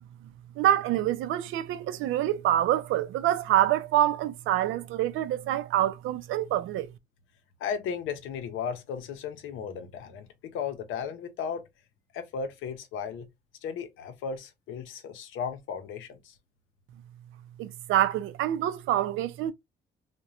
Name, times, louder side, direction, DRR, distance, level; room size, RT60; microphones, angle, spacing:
voice 1, 0.6-6.9 17.6-19.5, right 12 dB, 85° right, 0.4 m, -26 dB
voice 2, 7.6-11.6 12.1-13.3 13.6-16.4, left 6 dB, 85° left, 0.6 m, -35 dB
2.9 x 2.1 x 2.4 m
cardioid pair, 90°, 20 cm